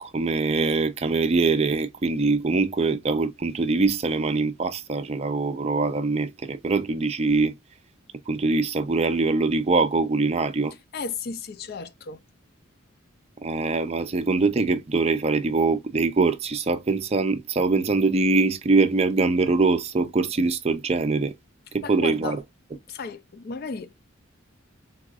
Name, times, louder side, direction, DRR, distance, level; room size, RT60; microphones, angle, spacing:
voice 1, 0.0-7.5 8.3-10.7 13.4-21.3 21.7-22.4, right 3 dB, 30° right, 0.4 m, -23 dB
voice 2, 10.9-12.2 21.8-22.4 22.7-23.9, left 4 dB, 50° left, 0.4 m, -34 dB
4.0 x 2.5 x 2.3 m
head